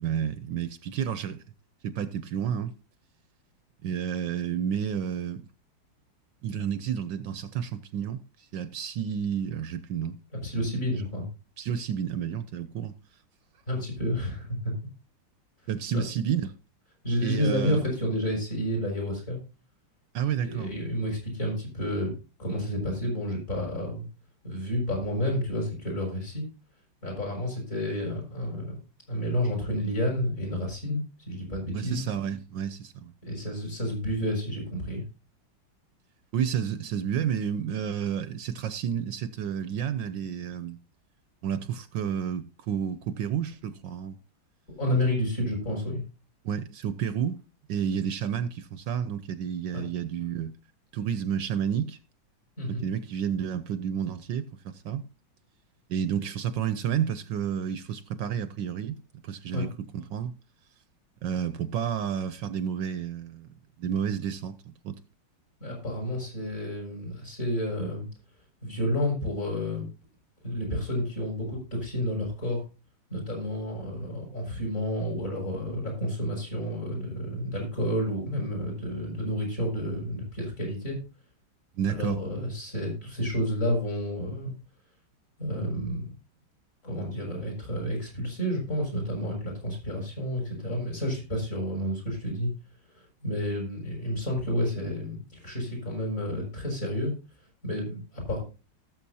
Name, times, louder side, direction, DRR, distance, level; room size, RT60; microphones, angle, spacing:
voice 1, 0.0-1.4 1.8-2.7 3.8-5.4 6.4-10.2 11.6-12.9 15.7-16.5 17.2-17.8 20.1-20.8 31.7-33.1 36.3-40.8 41.4-44.2 46.4-47.4 47.7-50.5 50.9-52.0 52.7-55.0 55.9-59.0 59.2-59.7 59.9-60.3 61.2-63.5 63.8-65.0 81.8-82.2, right 8 dB, 70° right, 1.4 m, -30 dB
voice 2, 10.4-11.3 13.7-14.7 15.9-16.0 17.0-19.4 20.4-22.1 22.4-24.1 24.4-26.4 27.0-28.8 29.1-32.0 33.2-35.0 44.8-46.0 49.7-49.8 52.6-52.8 59.5-59.7 65.6-68.1 68.6-69.9 70.4-72.6 73.1-81.0 81.9-84.5 85.4-86.1 86.8-92.5 93.0-97.1 97.6-98.4, equal, 40° left, 7.1 m, -30 dB
18.0 x 7.5 x 2.8 m
omnidirectional pair, 2.2 m